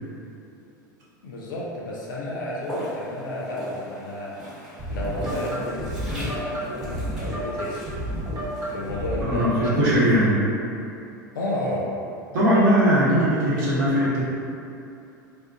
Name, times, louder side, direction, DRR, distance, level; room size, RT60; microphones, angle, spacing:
voice 1, 1.2-4.3 4.9-7.8 8.7-9.9 11.3-11.9, left 1 dB, 80° left, -5 dB, 0.5 m, -32 dB
Walk footsteps, 2.6-9.7, equal, 5° right, 1.1 m, -40 dB
sound 1, 4.8-10.0, right 1 dB, 40° right, 1.0 m, -31 dB
voice 2, 9.2-10.4 12.3-14.2, equal, 65° right, -8 dB, 0.9 m, -20 dB
2.4 x 2.1 x 3.5 m, 2.8 s
hypercardioid pair, 85°, 11 cm